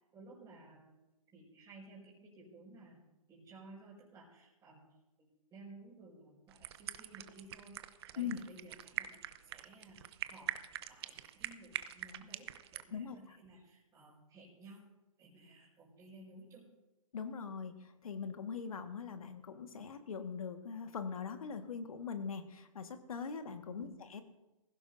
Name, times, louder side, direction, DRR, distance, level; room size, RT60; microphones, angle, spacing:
voice 1, 0.1-1.0 1.3-14.9 15.2-16.7 23.7-24.0, right 2 dB, 15° right, -9 dB, 4.9 m, -56 dB
sound 1, 6.5-12.8, right 12 dB, 45° right, 0.7 m, -43 dB
voice 2, 17.1-24.2, left 6 dB, 70° left, 7 dB, 1.6 m, -41 dB
20.0 x 16.0 x 2.7 m, 1.0 s
hypercardioid pair, 130°, 18 cm